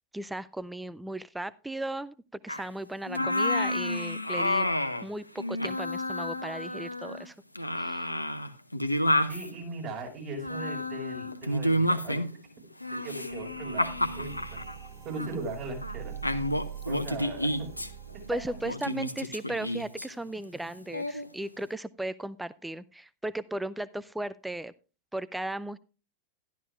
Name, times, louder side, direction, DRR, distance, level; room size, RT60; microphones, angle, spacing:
voice 1, 0.1-2.1 2.4-4.7 5.0-7.3 7.8-8.1 18.3-24.7 25.1-25.8, right 1 dB, 5° right, 18 dB, 0.4 m, -36 dB
sound 1, 2.5-2.7 3.1-5.1 5.4-7.3 7.6-9.5 10.4-12.4 12.8-14.8 15.2-15.3 15.8-16.0 16.2-17.9 18.7-20.1 20.9-21.3, left 1 dB, 85° left, 0.8 m, -30 dB
voice 2, 9.3-12.2 12.9-14.6 15.0-16.2 16.9-17.7 18.8-18.9, right 2 dB, 40° right, 0 dB, 5.5 m, -38 dB
sound 2, 13.3-18.7, right 10 dB, 25° right, 1.2 m, -43 dB
13.0 x 12.0 x 2.4 m, 0.34 s
figure-of-eight pair, 90°, 0 cm